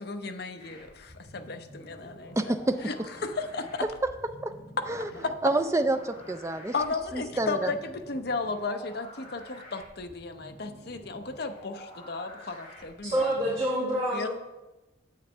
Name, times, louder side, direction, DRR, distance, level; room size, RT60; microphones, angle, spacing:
voice 1, 0.0-2.5 2.9-3.0 3.2-3.9 5.1-5.3 6.7-13.3 14.1-14.3, left 3 dB, 55° left, 7 dB, 0.6 m, -34 dB
sound 1, 0.6-13.7, left 1 dB, 30° left, 3.4 m, -49 dB
voice 2, 2.4-2.8 4.4-4.5 4.9-5.1 5.4-6.7 7.1-7.7, right 2 dB, 15° right, 8 dB, 0.4 m, -27 dB
voice 3, 13.0-14.3, equal, 30° right, -8 dB, 1.8 m, -27 dB
9.6 x 7.8 x 3.3 m, 1.0 s
head